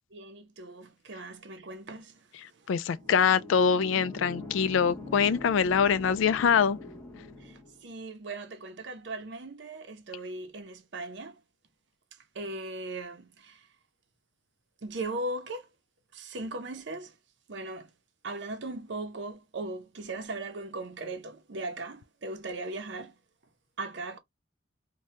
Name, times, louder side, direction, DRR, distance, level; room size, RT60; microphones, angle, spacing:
voice 1, 0.1-3.1 7.4-11.4 12.1-13.7 14.8-15.7 16.1-17.2 17.5-17.9 18.2-23.1 23.8-24.2, right 2 dB, 70° right, 0.7 m, -39 dB
voice 2, 2.7-6.8, left 6 dB, 85° left, 0.3 m, -24 dB
sound 1, 2.9-7.8, left 2 dB, 10° left, 0.9 m, -42 dB
2.8 x 2.2 x 3.0 m
head